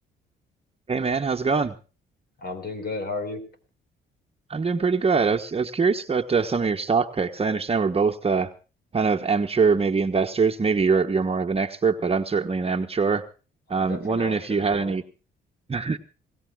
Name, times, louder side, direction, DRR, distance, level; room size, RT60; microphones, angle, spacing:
voice 1, 0.9-1.7 4.5-8.5 8.9-13.3 13.7-15.0 15.7-16.0, right 5 dB, 30° right, 5 dB, 1.3 m, -23 dB
voice 2, 2.4-3.5 13.7-15.0, left 3 dB, 50° left, 10 dB, 4.7 m, -34 dB
27.0 x 17.5 x 2.3 m, 0.35 s
cardioid pair, 90°, 20 cm